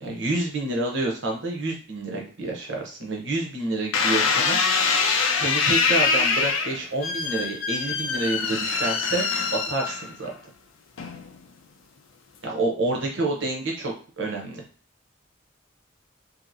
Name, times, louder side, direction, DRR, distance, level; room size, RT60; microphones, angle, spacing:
voice 1, 0.0-4.6 5.3-10.3 12.4-14.6, right 2 dB, 65° right, 0 dB, 0.8 m, -28 dB
sound 1, 3.9-10.3 11.0-11.4, left 5 dB, 85° left, 0.5 m, -24 dB
2.9 x 2.6 x 2.6 m, 0.39 s
head